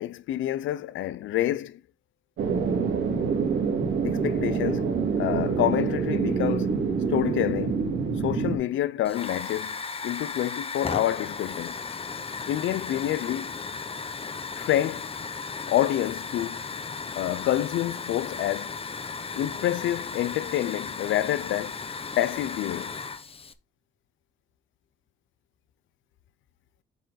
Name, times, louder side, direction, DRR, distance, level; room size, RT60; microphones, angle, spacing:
voice 1, 0.0-1.8 4.0-4.8 5.2-6.8 7.1-7.9 8.2-11.8 12.5-13.6 14.6-15.1 15.7-16.6 17.1-18.7 19.3-21.8 22.2-22.9, left 13 dB, 75° left, 0.6 m, -28 dB
sound 1, 2.4-8.6, right 5 dB, 75° right, 2.8 m, -26 dB
Hiss / Fire, 9.0-23.5, left 5 dB, 30° left, 0.8 m, -35 dB
8.0 x 4.6 x 4.0 m
cardioid pair, 90°, 20 cm